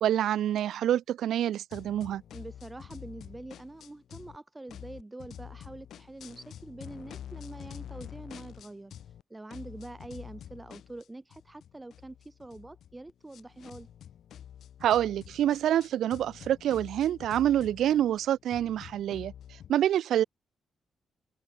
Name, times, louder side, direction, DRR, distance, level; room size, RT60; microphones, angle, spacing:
voice 1, 0.0-2.2 14.8-19.3 19.7-20.2, right 11 dB, 90° right, 0.4 m, -27 dB
sound 1, 1.7-4.4 4.7-9.2 9.5-19.7, left 10 dB, 70° left, 3.4 m, -47 dB
voice 2, 2.3-13.9, right 2 dB, 10° right, 3.3 m, -45 dB
wide cardioid pair, 165°, 0 cm